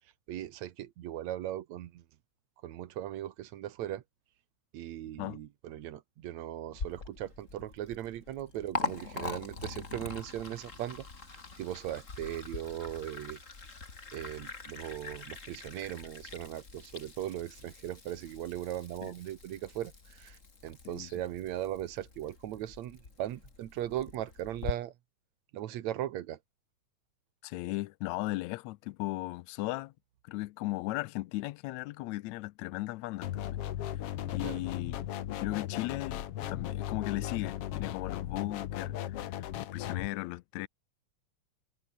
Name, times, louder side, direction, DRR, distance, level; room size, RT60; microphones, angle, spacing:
voice 1, 0.3-2.0 2.6-4.0 4.7-13.4 14.1-24.9 25.5-26.4 34.4-34.6, right 12 dB, 75° right, 2.4 m, -38 dB
Liquid, 6.7-24.7, left 4 dB, 25° left, 2.7 m, -43 dB
voice 2, 27.4-29.9 30.2-33.6 33.9-34.0 34.3-40.7, left 19 dB, 80° left, 1.9 m, -37 dB
sound 1, 33.2-40.1, left 12 dB, 60° left, 1.9 m, -37 dB
omnidirectional pair, 3.3 m